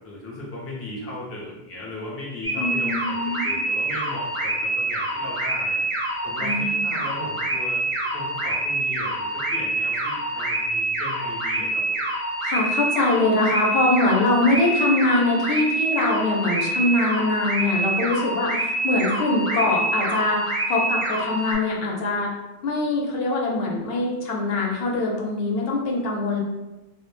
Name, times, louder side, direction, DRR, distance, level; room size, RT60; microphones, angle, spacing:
voice 1, 0.0-5.8 6.2-7.8 8.1-11.9, left 2 dB, 25° left, -5 dB, 0.3 m, -37 dB
sound 1, 2.4-21.6, right 2 dB, 35° right, 0.6 m, -26 dB
voice 2, 2.6-3.6 6.4-6.9 12.4-22.3 22.6-26.4, left 2 dB, 70° left, -2 dB, 0.8 m, -23 dB
2.2 x 2.1 x 3.0 m, 1.0 s
omnidirectional pair, 1.1 m